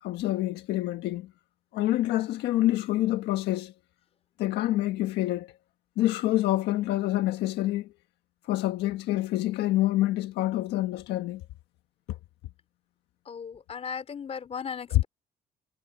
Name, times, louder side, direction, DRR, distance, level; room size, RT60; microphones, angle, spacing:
voice 1, 0.0-1.3 1.7-3.7 4.4-5.5 6.0-7.9 8.4-11.4 14.9-15.0, left 15 dB, 80° left, 1.5 m, -27 dB
voice 2, 13.3-15.0, left 6 dB, 35° left, 3.6 m, -36 dB
cardioid pair, 110°, 17 cm